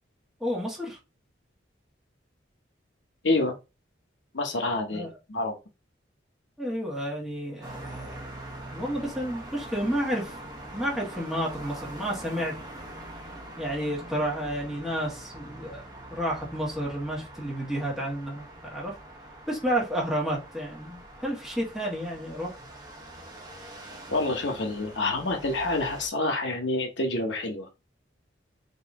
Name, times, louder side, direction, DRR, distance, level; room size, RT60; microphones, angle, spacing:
voice 1, 0.4-1.0 4.9-5.1 6.6-8.2 8.7-10.4 10.7-12.6 13.6-15.8 16.1-19.0 19.5-22.6, equal, ahead, 1.4 m, -31 dB
voice 2, 3.2-3.6 4.3-5.6 24.1-27.7, left 2 dB, 75° left, 1.0 m, -27 dB
sound 1, 7.6-26.1, right 1 dB, 20° right, 1.0 m, -43 dB
4.0 x 2.9 x 3.5 m
head